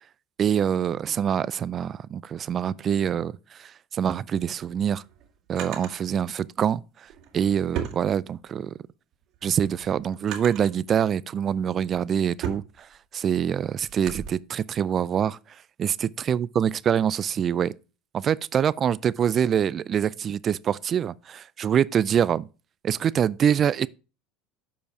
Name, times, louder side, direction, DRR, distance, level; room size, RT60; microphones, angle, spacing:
voice 1, 0.4-5.0 5.5-7.1 7.3-8.7 9.4-12.9 13.1-15.4 15.8-17.7 18.1-22.5 22.8-23.9, right 8 dB, 40° right, 0.3 m, -25 dB
Drawer open or close, 4.4-6.0 7.0-8.7 9.1-10.8 11.5-14.3, right 9 dB, 60° right, 2.6 m, -38 dB
7.1 x 5.1 x 4.7 m
hypercardioid pair, 90°, 0 cm